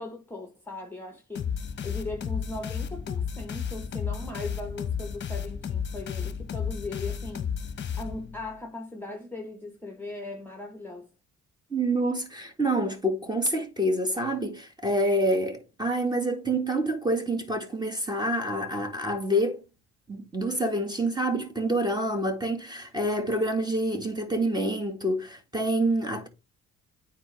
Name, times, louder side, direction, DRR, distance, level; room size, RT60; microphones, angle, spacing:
voice 1, 0.0-11.1, left 2 dB, 5° left, 1.1 m, -39 dB
sound 1, 1.4-8.5, left 7 dB, 35° left, 1.0 m, -33 dB
voice 2, 11.7-19.6 20.1-26.3, right 1 dB, 15° right, 1.9 m, -27 dB
9.2 x 4.2 x 3.3 m
cardioid pair, 90°, 30 cm